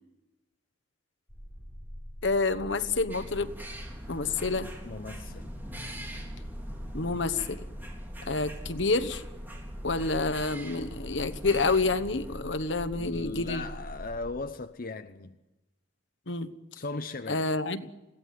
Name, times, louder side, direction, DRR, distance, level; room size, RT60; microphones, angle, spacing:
sound 1, 1.3-14.3, equal, 10° left, 5.9 m, -43 dB
voice 1, 2.2-3.5 4.1-4.7 6.9-7.6 8.3-9.2 9.8-13.6 16.3-16.5 17.3-17.8, left 3 dB, 70° left, 1.2 m, -28 dB
sound 2, 3.1-12.4, equal, 10° right, 4.0 m, -44 dB
voice 2, 4.8-5.6 12.9-15.4 16.7-17.5, left 3 dB, 50° left, 0.8 m, -38 dB
21.5 x 16.5 x 9.4 m
head